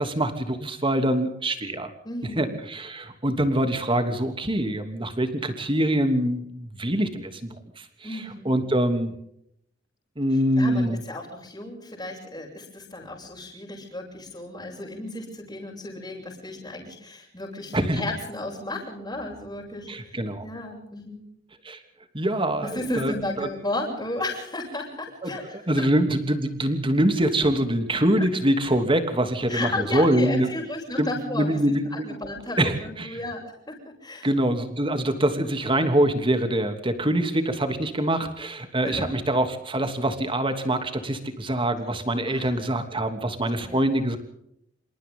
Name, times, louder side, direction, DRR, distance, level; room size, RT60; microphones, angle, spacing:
voice 1, 0.0-1.9 2.4-7.8 8.1-9.2 10.2-11.0 17.7-18.0 19.9-20.5 21.6-21.8 22.1-23.5 25.2-25.3 25.7-30.5 31.0-32.2 32.6-33.2 34.2-44.2, right 1 dB, 25° right, 7 dB, 3.0 m, -24 dB
voice 2, 2.0-2.5 8.0-8.6 10.6-19.9 20.4-21.3 22.6-25.6 29.5-34.3 38.8-39.1 42.3-42.8 43.6-43.8, left 2 dB, 20° left, -4 dB, 7.6 m, -34 dB
27.5 x 27.0 x 3.9 m, 0.74 s
head